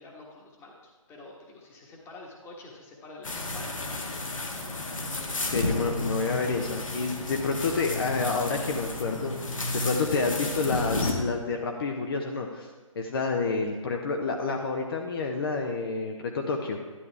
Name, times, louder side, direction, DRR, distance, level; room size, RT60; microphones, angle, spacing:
voice 1, 0.0-4.9, left 2 dB, 15° left, 0 dB, 1.4 m, -48 dB
sound 1, 3.2-11.1, left 2 dB, 70° left, 1.7 m, -32 dB
voice 2, 5.4-9.3 9.7-12.7 13.0-16.8, left 4 dB, 45° left, 2 dB, 0.9 m, -29 dB
11.0 x 10.5 x 3.4 m, 1.3 s
figure-of-eight pair, 140°, 17 cm